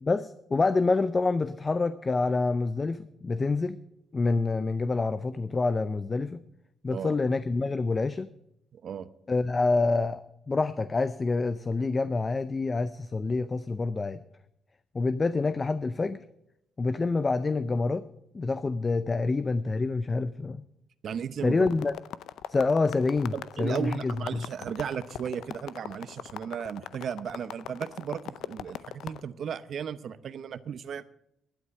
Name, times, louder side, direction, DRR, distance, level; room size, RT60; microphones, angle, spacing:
voice 1, 0.0-3.8 4.1-6.4 6.8-8.3 9.3-14.2 14.9-16.2 16.8-18.0 18.3-20.6 21.4-21.9 22.5-24.4, left 3 dB, 30° left, 14 dB, 0.5 m, -27 dB
voice 2, 6.9-7.3 8.7-9.1 21.0-21.8 23.3-31.0, right 8 dB, 60° right, 14 dB, 0.8 m, -35 dB
sound 1, 21.7-29.2, left 11 dB, 80° left, 0.5 m, -40 dB
11.5 x 9.4 x 7.6 m, 0.80 s
cardioid pair, 90°, 0 cm